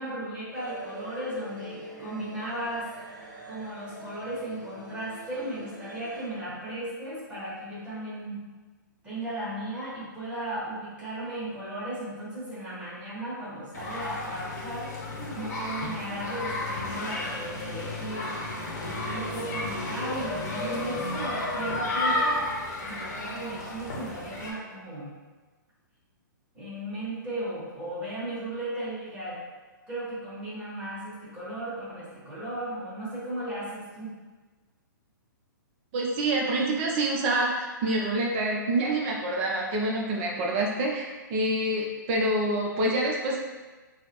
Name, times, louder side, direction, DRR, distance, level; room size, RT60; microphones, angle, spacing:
voice 1, 0.0-2.9 3.5-8.5 9.0-15.0 15.3-22.4 22.8-25.1 26.5-29.4 29.9-34.1, right 1 dB, 10° right, -11 dB, 1.4 m, -36 dB
sound 1, 0.5-6.3, right 2 dB, 60° right, 1.0 m, -44 dB
sound 2, 13.7-24.5, left 2 dB, 55° left, 0.8 m, -32 dB
voice 2, 35.9-43.4, right 1 dB, 35° right, -1 dB, 0.5 m, -27 dB
3.8 x 2.0 x 2.9 m, 1.3 s
hypercardioid pair, 130°, 11 cm